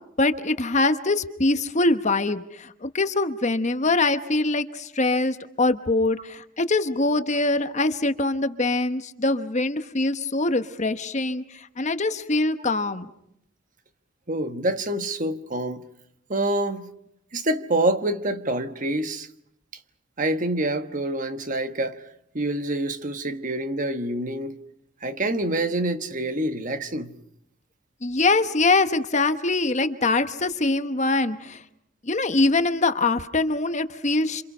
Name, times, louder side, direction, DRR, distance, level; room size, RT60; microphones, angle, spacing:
voice 1, 0.2-13.1 28.0-31.6 32.0-34.4, left 2 dB, 35° left, 1.1 m, -23 dB
voice 2, 14.3-15.9 16.3-16.9 17.3-19.3 20.2-22.0 22.3-24.6 25.0-27.1, right 1 dB, 40° right, 1.3 m, -26 dB
27.5 x 27.5 x 5.5 m
head